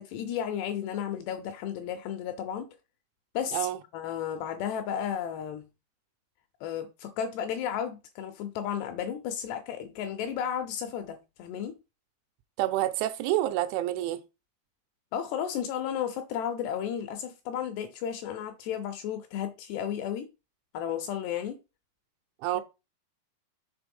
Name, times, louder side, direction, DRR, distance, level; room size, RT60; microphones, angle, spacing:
voice 1, 0.0-2.7 3.3-5.7 6.6-11.7 15.1-20.3 20.7-21.6 22.6-22.7, left 9 dB, 80° left, 2.5 m, -33 dB
voice 2, 12.6-14.2 22.4-22.6, right 14 dB, 85° right, 3.0 m, -28 dB
6.8 x 4.0 x 5.3 m
omnidirectional pair, 5.4 m